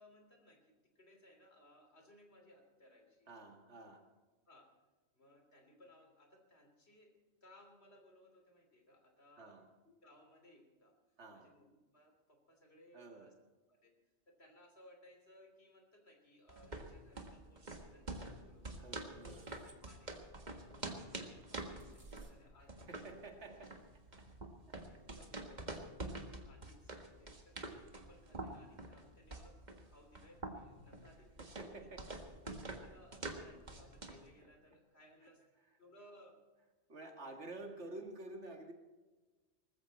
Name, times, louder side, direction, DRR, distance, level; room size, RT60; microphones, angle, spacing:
voice 1, 0.0-3.3 4.5-4.7 5.1-9.6 9.8-10.9 11.3-13.3 13.7-13.9 14.3-18.8 19.6-23.2 24.8-25.7 26.0-31.3 32.8-35.4 35.8-36.4 37.0-37.4, left 1 dB, 60° left, 3 dB, 3.5 m, -63 dB
voice 2, 3.3-4.1 9.4-9.7 11.2-11.6 12.9-13.4 18.8-19.6 22.6-23.9 24.4-25.1 25.7-25.8 31.4-32.2 32.4-32.6 35.2-35.3 36.9-38.7, right 2 dB, 70° right, 4 dB, 2.2 m, -51 dB
sound 1, 16.5-34.3, right 2 dB, 40° right, 1.7 m, -47 dB
sound 2, 19.2-19.8 21.4-22.3, right 2 dB, 15° right, 1.5 m, -66 dB
19.5 x 15.0 x 4.2 m, 1.3 s
omnidirectional pair, 1.2 m